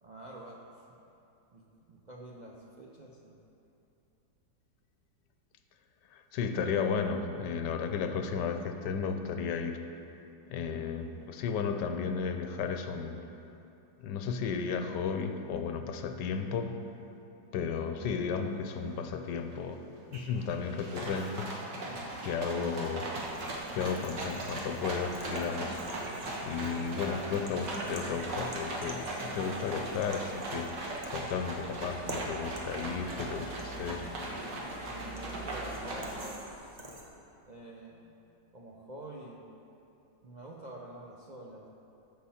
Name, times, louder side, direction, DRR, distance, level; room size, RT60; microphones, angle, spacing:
voice 1, 0.0-0.8 1.5-3.4 21.7-22.6 34.9-36.4 37.4-38.2 38.5-39.5 40.2-41.6, right 1 dB, 55° right, -3 dB, 0.5 m, -48 dB
voice 2, 6.1-9.8 10.5-13.1 14.0-16.7 17.5-19.8 20.1-21.5 22.2-23.1 23.7-25.8 26.4-34.0, left 6 dB, 85° left, 7 dB, 1.3 m, -34 dB
sound 1, 18.9-19.0 19.3-19.7 20.1-36.3, right 2 dB, 90° right, 2.0 m, -38 dB
sound 2, 23.2-37.1, right 1 dB, 30° right, 0.9 m, -49 dB
sound 3, 31.0-35.8, right 3 dB, 5° right, 1.6 m, -50 dB
13.5 x 6.1 x 4.3 m, 2.8 s
omnidirectional pair, 1.8 m